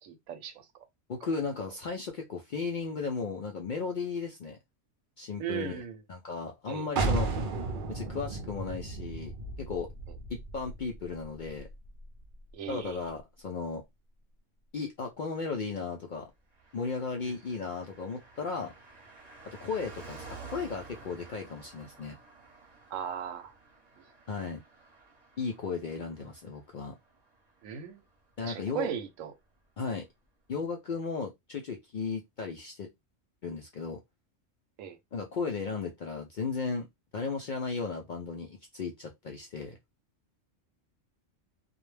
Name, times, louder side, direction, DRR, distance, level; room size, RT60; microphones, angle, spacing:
voice 1, 0.0-0.7 5.4-6.0 6.7-6.9 12.5-13.0 22.9-23.5 24.0-24.1 27.6-28.0 28.4-29.3 34.8-35.0, right 9 dB, 90° right, 1.0 m, -37 dB
voice 2, 1.1-4.6 5.2-5.8 6.1-7.3 7.9-9.3 9.6-9.9 10.3-11.7 12.7-13.8 14.7-16.3 16.7-18.7 19.4-22.2 24.3-24.6 25.4-27.0 28.4-28.9 29.8-30.1 30.5-32.9 33.4-34.0 35.1-36.9 37.1-39.8, left 4 dB, 65° left, 0.4 m, -35 dB
sound 1, 7.0-12.5, right 3 dB, 55° right, 0.6 m, -34 dB
Car passing by, 16.5-28.4 28.6-28.7, right 4 dB, 35° right, 0.9 m, -51 dB
2.3 x 2.1 x 3.1 m
omnidirectional pair, 1.3 m